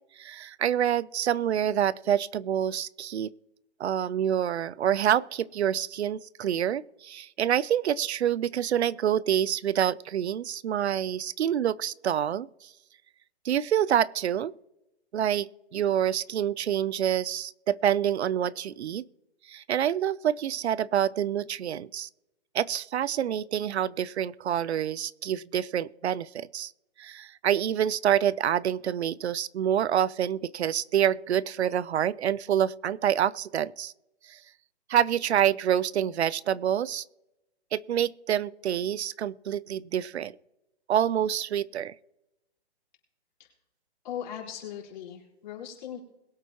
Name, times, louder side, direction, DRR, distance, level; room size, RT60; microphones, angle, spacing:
voice 1, 0.2-3.3 3.8-12.5 13.4-14.5 15.1-19.0 19.5-22.1 22.5-26.7 27.0-33.9 34.3-34.4 34.9-37.0 37.7-40.3 40.9-41.9, right 10 dB, 75° right, 22 dB, 0.5 m, -27 dB
voice 2, 44.0-46.0, left 9 dB, 45° left, -3 dB, 4.4 m, -39 dB
22.0 x 8.1 x 3.0 m, 0.95 s
hypercardioid pair, 160°, 33 cm